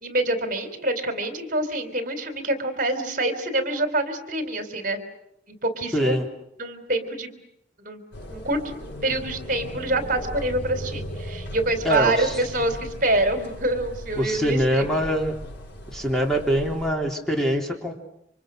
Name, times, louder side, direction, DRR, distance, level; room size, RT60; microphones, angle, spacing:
voice 1, 0.0-5.0 5.5-6.2 6.6-7.3 7.8-8.0 8.3-8.6 9.0-14.8, right 1 dB, 50° right, 8 dB, 3.7 m, -26 dB
voice 2, 5.9-6.3 11.8-12.4 14.2-15.3 15.9-17.9, equal, 5° left, 1 dB, 3.5 m, -23 dB
sound 1, 8.1-16.9, equal, 90° left, 5.3 m, -37 dB
29.5 x 26.5 x 6.4 m, 0.78 s
head